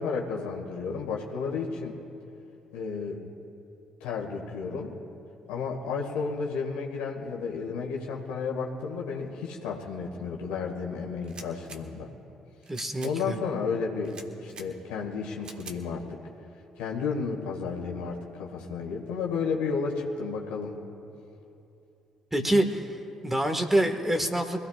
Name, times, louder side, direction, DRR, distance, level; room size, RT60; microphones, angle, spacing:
voice 1, 0.0-1.9 2.7-3.2 4.0-4.9 5.5-12.1 13.0-16.0 16.8-20.8, left 5 dB, 70° left, 0 dB, 2.1 m, -32 dB
sound 1, 11.2-11.8 12.6-13.1 14.0-14.7 15.4-15.8, right 4 dB, 45° right, 1.6 m, -45 dB
voice 2, 12.7-13.4 22.3-24.6, right 1 dB, 10° right, 5 dB, 1.8 m, -26 dB
25.0 x 16.5 x 2.5 m, 2.8 s
figure-of-eight pair, 45°, 2 cm